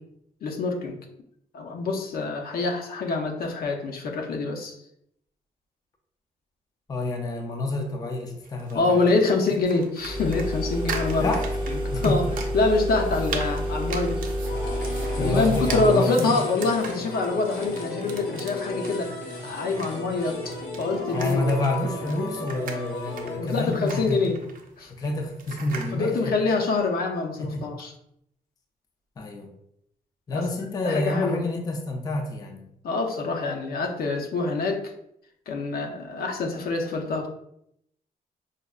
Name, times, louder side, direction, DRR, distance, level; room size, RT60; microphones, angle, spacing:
voice 1, 0.4-1.0 1.5-4.7 8.7-11.3 11.7-12.2 12.5-14.2 15.2-21.5 23.4-24.4 24.8-24.9 25.9-27.9 30.3-30.4 30.8-31.4 32.8-34.8 35.5-37.3, left 3 dB, 70° left, 2 dB, 0.6 m, -25 dB
voice 2, 6.9-9.0 11.2-11.5 11.9-12.2 15.2-16.3 21.1-24.2 25.0-26.3 27.4-27.7 29.2-29.5 30.3-32.7, left 2 dB, 25° left, 3 dB, 0.4 m, -28 dB
sound 1, 8.4-25.9, right 5 dB, 60° right, 0.5 m, -40 dB
sound 2, 10.0-16.0, equal, 30° right, 0.8 m, -29 dB
sound 3, 14.4-23.4, left 2 dB, 90° left, 1.0 m, -35 dB
4.8 x 2.2 x 2.3 m, 0.75 s
wide cardioid pair, 145°, 16 cm